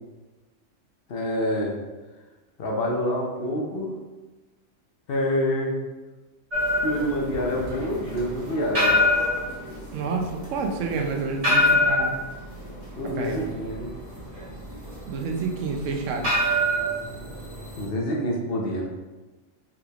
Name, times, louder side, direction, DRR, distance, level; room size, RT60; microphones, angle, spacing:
voice 1, 1.1-1.8 2.6-3.9 5.1-5.8 6.8-9.0 13.0-13.9 17.8-18.9, equal, 55° left, -1 dB, 0.8 m, -27 dB
sound 1, 6.5-17.9, left 1 dB, 40° right, 1.0 m, -25 dB
voice 2, 9.9-12.1 13.2-13.5 15.1-16.3, right 4 dB, 85° right, 3 dB, 0.9 m, -29 dB
4.9 x 3.3 x 2.3 m, 1.2 s
omnidirectional pair, 1.2 m